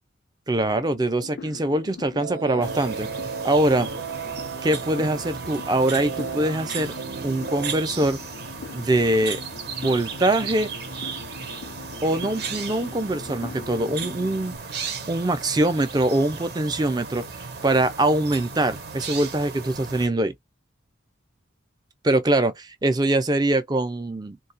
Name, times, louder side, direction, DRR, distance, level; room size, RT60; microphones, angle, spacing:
voice 1, 0.5-3.1 3.4-3.9 4.6-6.9 7.2-8.2 8.7-9.4 9.8-10.7 12.0-14.6 15.1-17.3 17.6-20.3 22.0-24.4, right 1 dB, 20° right, 0.4 m, -23 dB
sound 1, 0.8-14.6, left 6 dB, 60° left, 0.3 m, -42 dB
sound 2, 2.2-7.8, right 6 dB, 90° right, 0.4 m, -35 dB
sound 3, 2.6-20.1, right 5 dB, 55° right, 0.7 m, -36 dB
2.3 x 2.2 x 2.5 m
head